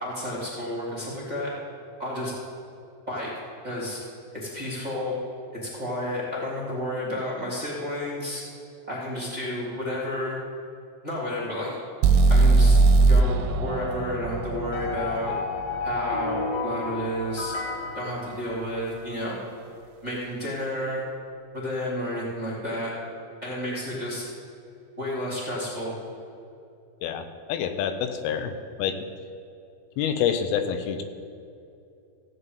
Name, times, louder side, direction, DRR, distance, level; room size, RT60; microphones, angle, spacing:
voice 1, 0.0-1.5 2.0-2.3 3.1-3.3 3.6-4.0 4.3-5.2 5.5-8.4 8.9-10.4 11.0-11.8 12.3-12.8 13.1-15.3 15.8-17.5 17.9-19.4 20.0-21.0 21.5-22.9 23.4-24.2 25.0-26.0, left 1 dB, 10° right, -7 dB, 2.3 m, -31 dB
sound 1, 12.0-16.0, right 3 dB, 80° right, 3.0 m, -20 dB
sound 2, 14.7-19.0, left 4 dB, 55° left, 1.9 m, -32 dB
voice 2, 27.0-28.5 28.8-29.0 30.0-31.0, left 8 dB, 90° left, 8 dB, 3.4 m, -27 dB
15.5 x 5.4 x 8.2 m, 2.6 s
omnidirectional pair, 5.6 m